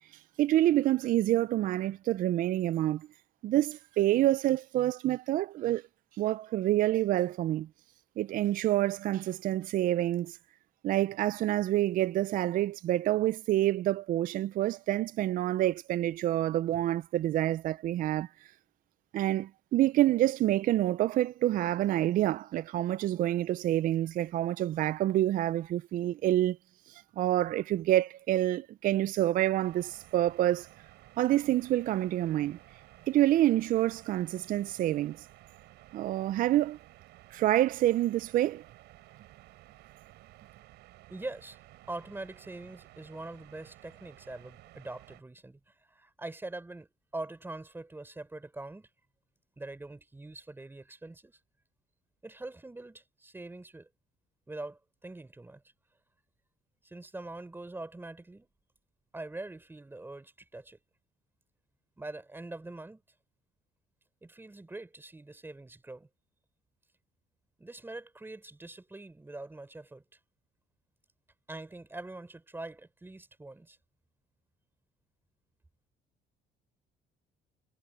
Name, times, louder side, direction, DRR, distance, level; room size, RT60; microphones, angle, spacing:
voice 1, 0.4-3.1 3.4-5.8 6.2-7.7 8.2-10.4 10.8-18.3 19.1-26.6 26.9-30.7 31.2-32.6 33.1-35.3 35.9-36.8 37.3-38.6, right 14 dB, 55° right, 0.4 m, -27 dB
sound 1, 29.6-45.2, right 17 dB, 85° right, 6.5 m, -55 dB
voice 2, 41.1-41.6 41.9-45.6 45.9-48.9 49.6-51.4 52.2-53.9 54.5-55.6 56.8-58.5 59.1-60.8 62.0-63.0 64.2-66.1 67.6-70.0 71.5-73.8, right 2 dB, 10° right, 3.6 m, -43 dB
cardioid pair, 110°, 17 cm